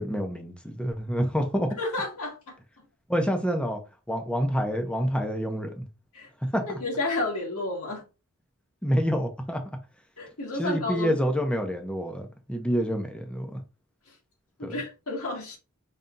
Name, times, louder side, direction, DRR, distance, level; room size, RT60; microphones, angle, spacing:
voice 1, 0.0-1.7 3.1-3.8 4.1-5.9 6.5-6.8 8.8-9.6 10.6-13.6 14.6-14.7, equal, 5° left, 0.8 m, -27 dB
voice 2, 1.8-2.6 6.1-6.3 6.6-8.0 10.2-11.2 14.6-15.6, left 2 dB, 75° left, 1.9 m, -31 dB
5.2 x 3.4 x 2.7 m
head